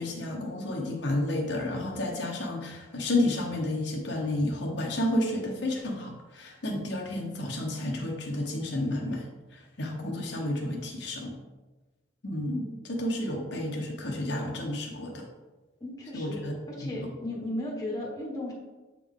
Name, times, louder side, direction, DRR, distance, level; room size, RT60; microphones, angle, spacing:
voice 1, 0.0-9.2 9.5-11.4 12.2-15.2 16.1-16.9, left 1 dB, 60° left, -1 dB, 0.9 m, -31 dB
voice 2, 15.8-16.4 16.7-18.5, left 1 dB, 20° left, -3 dB, 1.1 m, -35 dB
7.4 x 3.6 x 3.6 m, 1.2 s
head